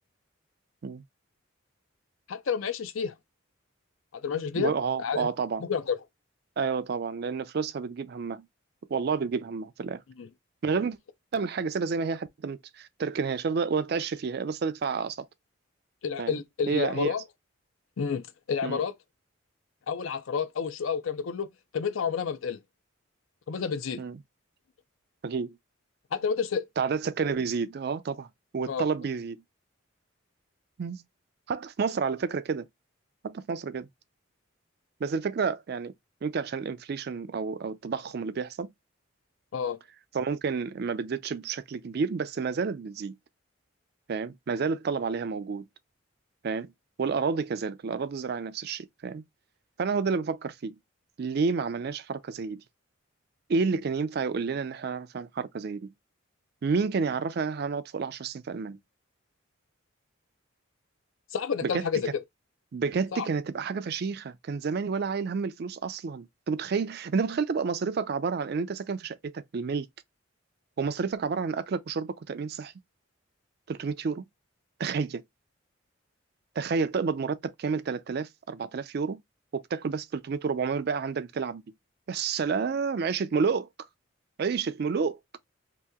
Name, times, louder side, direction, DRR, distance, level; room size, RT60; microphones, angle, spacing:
voice 1, 2.3-3.1 4.1-4.7 5.0-5.3 5.6-6.0 10.2-10.3 16.0-17.2 18.0-18.9 19.9-21.5 21.7-22.6 23.5-24.0 26.1-26.7 28.7-28.9 39.5-39.8 61.3-62.2 63.1-63.3, left 6 dB, 75° left, 0.5 m, -30 dB
voice 2, 4.6-5.6 6.6-8.5 8.9-10.0 10.6-11.0 11.3-15.3 16.2-16.3 16.7-17.1 18.6-18.8 24.0-24.2 25.2-25.6 26.8-28.3 28.5-29.4 30.8-31.0 31.5-32.7 33.2-33.9 35.0-35.9 36.2-38.7 40.1-43.2 44.1-45.7 46.4-46.7 47.0-49.2 49.8-50.8 51.2-52.6 53.5-55.9 56.6-58.8 61.6-61.9 62.7-69.9 70.8-72.7 73.7-74.2 74.8-75.2 76.6-79.2 79.5-81.6 82.1-83.7 84.4-85.2, right 5 dB, 50° right, 0.4 m, -30 dB
2.8 x 2.7 x 3.4 m
head